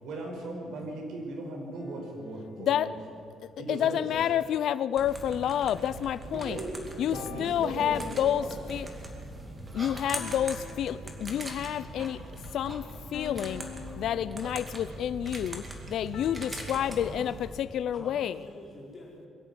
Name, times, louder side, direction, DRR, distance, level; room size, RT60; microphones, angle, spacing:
voice 1, 0.0-2.9 3.6-4.0 6.3-6.7 7.1-8.5, right 2 dB, 70° right, 2 dB, 5.1 m, -38 dB
sound 1, 1.7-2.9 4.1-6.6 7.1-8.6 10.1-11.6 13.1-15.0 16.1-17.8, left 7 dB, 75° left, 2.4 m, -48 dB
voice 2, 2.6-2.9 3.7-6.6 7.0-8.9 9.7-12.2 12.5-13.7 14.0-18.4, left 10 dB, 60° left, 16 dB, 0.5 m, -29 dB
sound 2, 5.0-17.6, right 1 dB, 15° right, 2.4 m, -41 dB
voice 3, 16.7-17.2 17.9-19.3, left 2 dB, 25° left, -3 dB, 4.9 m, -47 dB
22.5 x 13.5 x 9.8 m, 2.4 s
cardioid pair, 170°, 0 cm